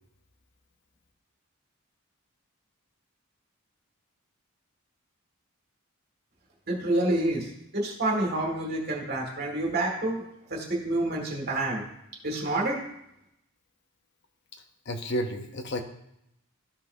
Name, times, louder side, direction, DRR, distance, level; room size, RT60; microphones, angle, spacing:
voice 1, 6.7-10.2 10.5-11.8 12.2-12.8, right 1 dB, 45° right, -1 dB, 2.1 m, -28 dB
voice 2, 14.9-15.8, equal, 50° left, 6 dB, 0.8 m, -31 dB
14.0 x 5.7 x 2.7 m, 0.80 s
head